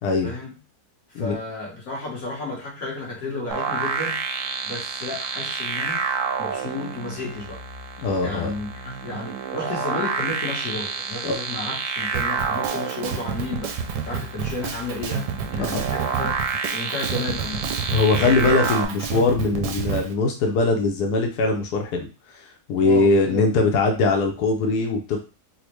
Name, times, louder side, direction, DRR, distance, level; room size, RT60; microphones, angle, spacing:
voice 1, 0.2-0.5 1.1-4.2 4.6-6.0 6.4-7.6 8.2-13.7 14.0-17.7 22.8-23.7, left 2 dB, 60° left, -3 dB, 1.6 m, -32 dB
sound 1, 3.5-18.9, right 6 dB, 70° right, 0.8 m, -29 dB
voice 2, 8.0-8.5 11.2-11.4 15.6-15.8 17.9-22.1 22.7-25.2, left 3 dB, 85° left, 2 dB, 1.2 m, -21 dB
Drum kit, 12.1-20.1, right 6 dB, 85° right, 1.1 m, -30 dB
4.0 x 2.1 x 3.0 m, 0.33 s
omnidirectional pair, 1.7 m